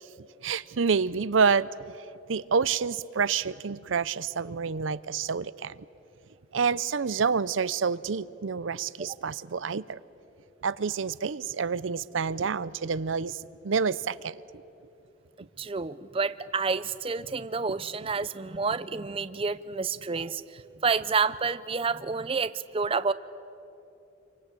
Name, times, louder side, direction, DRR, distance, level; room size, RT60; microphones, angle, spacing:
voice 1, 0.4-1.7 2.3-5.8 6.5-10.0 10.6-14.4, right 5 dB, 75° right, 17 dB, 0.6 m, -28 dB
voice 2, 15.6-23.1, right 4 dB, 30° right, 13 dB, 0.5 m, -29 dB
27.5 x 24.0 x 8.3 m, 2.9 s
head